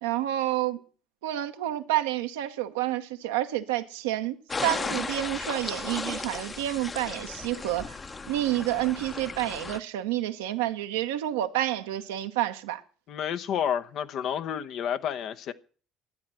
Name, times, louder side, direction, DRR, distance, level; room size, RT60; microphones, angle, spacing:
voice 1, 0.0-0.8 1.2-7.9 8.3-12.8, right 14 dB, 75° right, 1.0 m, -29 dB
sound 1, 4.5-9.8, left 4 dB, 25° left, 1.0 m, -35 dB
voice 2, 13.1-15.5, left 9 dB, 55° left, 0.9 m, -30 dB
12.0 x 9.9 x 7.6 m
figure-of-eight pair, 55°, 0 cm